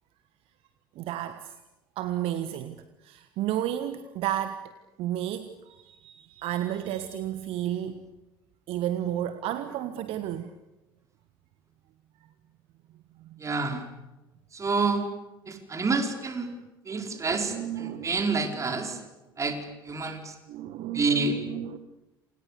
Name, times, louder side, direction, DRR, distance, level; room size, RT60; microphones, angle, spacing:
voice 1, 0.9-1.6 2.0-4.7 5.0-8.1 8.7-10.6 13.2-13.4 16.9-18.1 18.4-19.0 20.5-21.8, right 11 dB, 50° right, 11 dB, 1.4 m, -33 dB
voice 2, 13.4-13.8 14.5-15.1 15.5-16.5 16.8-19.0 19.4-20.4 20.9-21.4, right 4 dB, 25° right, 5 dB, 5.0 m, -28 dB
28.5 x 27.5 x 6.8 m, 1.0 s
figure-of-eight pair, 60°, 12 cm